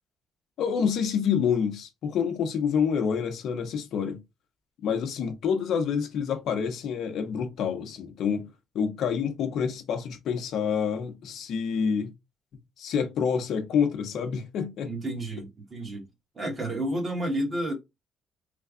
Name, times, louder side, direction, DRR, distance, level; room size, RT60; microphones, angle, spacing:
voice 1, 0.6-4.2 4.8-8.5 8.7-12.1 12.8-14.9, left 7 dB, 65° left, 0.7 m, -27 dB
voice 2, 14.8-16.1 16.3-17.7, right 1 dB, 25° right, 1.3 m, -30 dB
3.3 x 2.3 x 3.6 m
cardioid pair, 145°, 0 cm